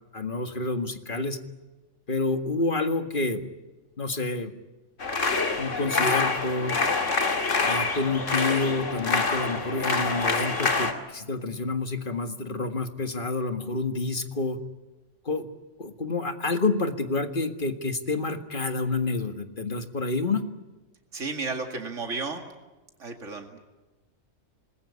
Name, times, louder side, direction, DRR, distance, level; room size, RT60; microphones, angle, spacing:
voice 1, 0.1-1.4 2.1-3.5 4.0-4.5 5.6-6.8 7.6-14.6 15.3-15.5 15.8-20.4, left 3 dB, 45° left, 7 dB, 2.0 m, -28 dB
sound 1, 5.0-10.9, left 4 dB, 75° left, 2.6 m, -26 dB
voice 2, 21.1-22.4 23.0-23.6, right 4 dB, 75° right, 3 dB, 2.6 m, -33 dB
27.0 x 20.5 x 9.8 m, 1.1 s
omnidirectional pair, 1.3 m